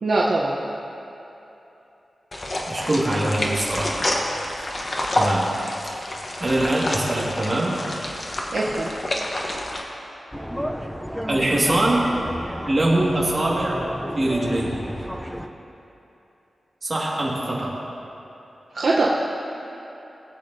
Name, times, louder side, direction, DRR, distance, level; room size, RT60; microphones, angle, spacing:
voice 1, 0.0-0.6 8.5-8.9 18.7-19.3, right 2 dB, 60° right, -4 dB, 0.8 m, -22 dB
sound 1, 2.3-9.8, left 1 dB, 35° left, 1.1 m, -28 dB
voice 2, 2.7-4.1 5.2-5.5 6.4-7.8 11.3-12.1 12.7-13.8 14.1-14.9 16.8-17.8, right 1 dB, 35° right, -5 dB, 1.9 m, -23 dB
sound 2, 10.3-15.5, equal, ahead, 0.5 m, -32 dB
19.5 x 8.4 x 2.7 m, 3.0 s
wide cardioid pair, 140°, 0 cm